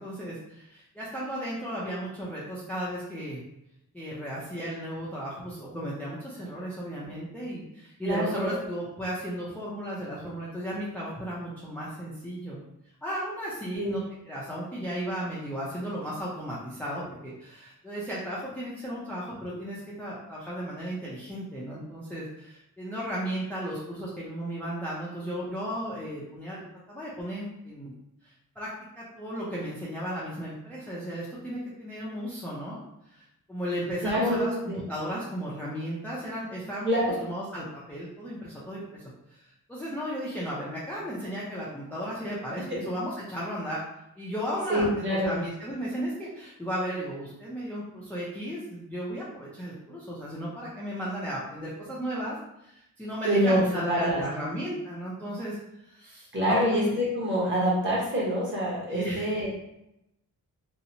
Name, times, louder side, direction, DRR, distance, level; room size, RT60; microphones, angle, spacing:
voice 1, 0.0-3.4 3.9-12.6 13.0-26.6 26.9-27.9 28.2-28.7 29.0-32.8 33.1-39.0 39.3-43.8 44.2-52.4 52.6-55.6 55.8-57.0 58.9-59.3, equal, 5° left, -7 dB, 0.4 m, -35 dB
voice 2, 8.0-8.6 13.7-14.0 34.0-34.8 36.8-37.3 42.7-42.8 44.7-45.4 53.2-53.6 53.9-54.2 56.3-59.5, equal, 30° right, -6 dB, 1.0 m, -26 dB
2.8 x 2.0 x 2.6 m, 0.83 s
wide cardioid pair, 135°, 38 cm